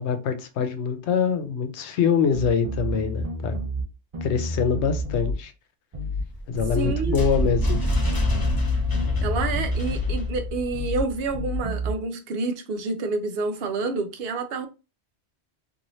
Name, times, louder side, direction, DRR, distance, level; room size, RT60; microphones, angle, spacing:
voice 1, 0.0-3.5 4.2-5.5 6.5-7.8, left 6 dB, 85° left, 0.9 m, -24 dB
sound 1, 2.3-3.9 4.1-5.4 5.9-6.3 6.5-8.7 8.9-10.2 10.7-11.1 11.3-11.9, equal, 40° right, 0.5 m, -30 dB
sound 2, 6.2-11.4, left 2 dB, 25° left, 0.6 m, -26 dB
voice 2, 6.7-7.2 9.2-14.7, right 3 dB, 70° right, 0.8 m, -28 dB
3.0 x 2.7 x 2.7 m
omnidirectional pair, 1.1 m